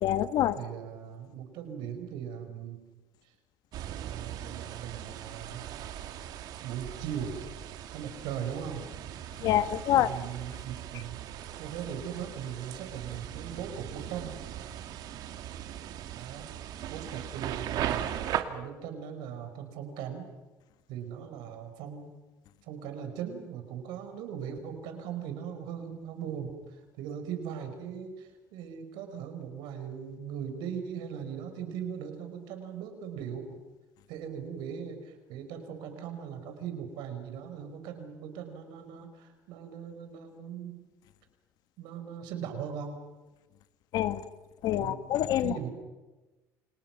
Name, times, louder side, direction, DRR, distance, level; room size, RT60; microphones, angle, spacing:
voice 1, 0.0-0.6 9.4-10.1 43.9-44.2 44.6-45.6, left 12 dB, 65° left, 11 dB, 1.6 m, -26 dB
voice 2, 0.6-2.8 4.0-5.7 6.6-7.4 7.9-8.9 9.9-11.2 11.6-14.4 16.1-16.5 16.8-18.1 18.5-20.3 20.9-22.1 22.6-33.6 34.1-40.9 41.8-43.0 44.8-45.0 45.4-45.7, right 8 dB, 80° right, 7 dB, 5.1 m, -39 dB
sound 1, 3.7-18.4, right 11 dB, 60° right, 2.3 m, -39 dB
29.0 x 28.0 x 6.0 m, 1.1 s
cardioid pair, 140°, 8 cm